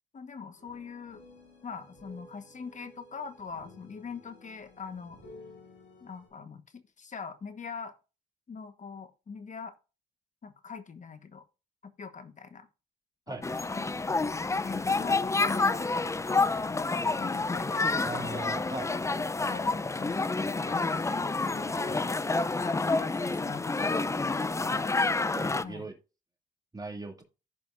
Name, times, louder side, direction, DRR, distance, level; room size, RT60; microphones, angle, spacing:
voice 1, 0.1-1.2 1.6-5.2 6.0-7.9 8.5-9.7 10.4-11.4 11.8-12.7 13.3-13.4 13.7-18.3 18.9-19.1 19.4-22.0 22.6-24.0 24.4-24.9 25.6-25.8, left 5 dB, 40° left, 10 dB, 1.3 m, -43 dB
sound 1, 0.6-6.3, left 2 dB, 80° left, 5.6 m, -53 dB
sound 2, 13.4-25.6, left 3 dB, 15° left, 0.5 m, -29 dB
voice 2, 18.0-18.9 21.9-22.0 25.3-25.9 26.7-27.2, right 2 dB, 20° right, 2 dB, 2.5 m, -38 dB
15.5 x 5.2 x 2.6 m, 0.31 s
cardioid pair, 90°, 20 cm